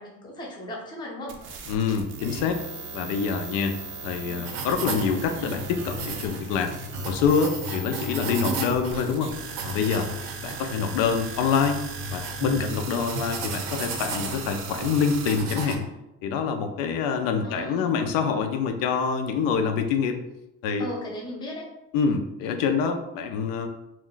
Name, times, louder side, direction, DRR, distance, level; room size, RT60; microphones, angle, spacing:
voice 1, 0.0-1.4 4.2-4.7 17.4-18.0 20.8-21.6, left 1 dB, 15° left, -2 dB, 0.5 m, -37 dB
sound 1, 1.3-15.4, right 4 dB, 40° right, 0.4 m, -39 dB
voice 2, 1.7-2.6 2.9-3.8 4.0-6.7 7.0-9.3 9.6-10.1 10.4-11.8 12.1-15.9 16.2-20.2 20.6-20.9 21.9-23.7, left 6 dB, 85° left, 6 dB, 0.5 m, -26 dB
sound 2, 4.4-15.8, right 2 dB, 90° right, 0.6 m, -34 dB
2.5 x 2.2 x 3.7 m, 0.89 s
cardioid pair, 160°, 32 cm